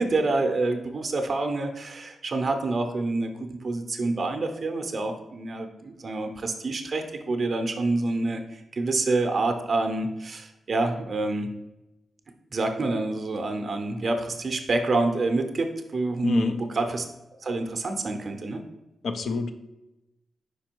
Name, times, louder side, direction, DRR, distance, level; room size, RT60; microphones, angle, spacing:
voice 1, 0.0-11.5 12.5-17.1 17.4-18.6, right 2 dB, 40° right, 5 dB, 0.6 m, -27 dB
voice 2, 16.2-16.6 19.0-19.5, left 4 dB, 65° left, 9 dB, 0.5 m, -26 dB
5.1 x 4.8 x 4.4 m, 0.97 s
wide cardioid pair, 130°, 0 cm